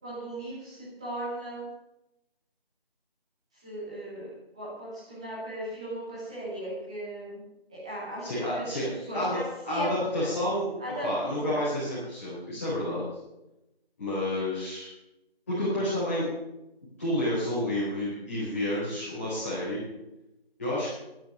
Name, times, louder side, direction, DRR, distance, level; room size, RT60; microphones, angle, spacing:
voice 1, 0.0-1.7 3.6-7.4 7.7-10.3 10.8-11.6, right 1 dB, 5° right, -9 dB, 2.1 m, -37 dB
voice 2, 8.2-8.9 9.1-9.4 9.6-10.7 11.0-13.0 14.0-14.9 15.5-16.3 17.0-19.8 20.6-20.9, left 1 dB, 15° left, -11 dB, 4.3 m, -29 dB
12.0 x 12.0 x 7.4 m, 0.93 s
figure-of-eight pair, 175°, 30 cm